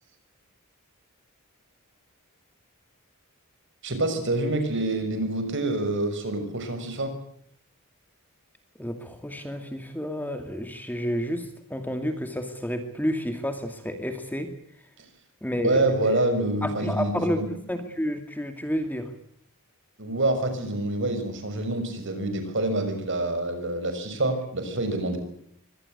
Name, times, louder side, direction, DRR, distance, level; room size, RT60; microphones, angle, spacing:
voice 1, 3.8-7.1 15.6-17.4 20.0-25.2, right 2 dB, 55° right, 7 dB, 6.3 m, -26 dB
voice 2, 8.8-14.5 15.4-16.2 16.6-19.1, equal, 10° left, 7 dB, 2.2 m, -30 dB
24.5 x 18.5 x 8.0 m, 0.68 s
head